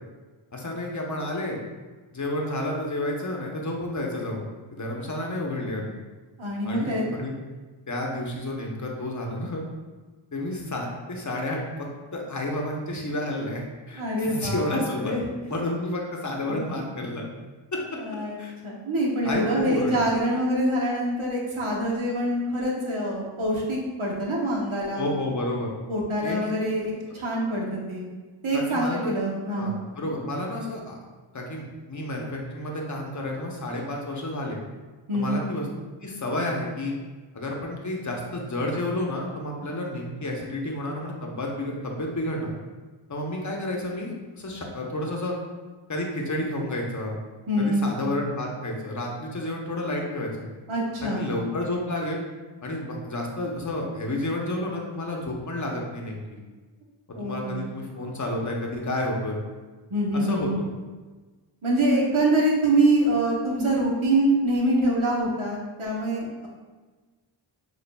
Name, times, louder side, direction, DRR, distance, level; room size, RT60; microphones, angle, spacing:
voice 1, 0.5-1.6 2.1-5.9 6.6-7.3 7.9-9.6 10.3-11.6 12.1-15.2 15.4-17.2 17.7-17.8 18.4-18.5 19.2-20.1 25.0-25.7 26.2-26.5 28.5-29.2 29.5-31.0 31.3-34.6 35.1-35.7 36.0-36.9 37.3-42.5 43.1-45.3 45.9-47.2 47.6-50.5 51.0-52.2 52.6-56.4 57.1-59.4 60.1-60.5, left 1 dB, 35° left, 0 dB, 0.8 m, -30 dB
voice 2, 6.4-7.1 14.0-15.2 18.0-25.1 25.9-28.1 28.4-29.8 35.1-35.4 47.5-48.0 50.7-51.3 57.1-57.7 59.9-60.6 61.6-66.5, right 1 dB, 75° right, -4 dB, 1.1 m, -25 dB
6.6 x 2.5 x 2.2 m, 1.3 s
wide cardioid pair, 45°, 49 cm